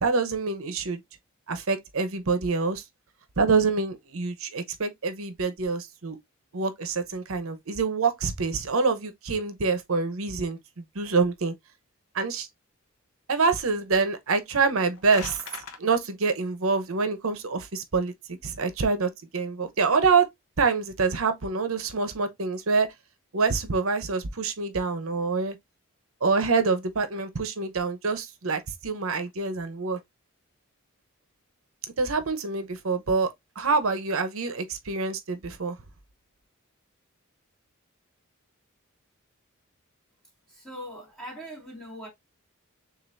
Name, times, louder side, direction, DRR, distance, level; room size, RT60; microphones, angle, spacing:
voice 1, 0.0-1.0 1.5-2.8 3.4-6.2 6.5-11.5 12.1-12.5 13.3-15.4 15.8-20.3 20.6-22.9 23.3-25.6 26.2-30.0 32.0-33.3 33.6-35.8, right 4 dB, 65° right, 0.8 m, -26 dB
sound 1, 14.7-15.8, left 6 dB, 80° left, 0.7 m, -40 dB
voice 2, 40.5-42.1, equal, 5° left, 3.1 m, -41 dB
6.6 x 2.5 x 2.5 m
head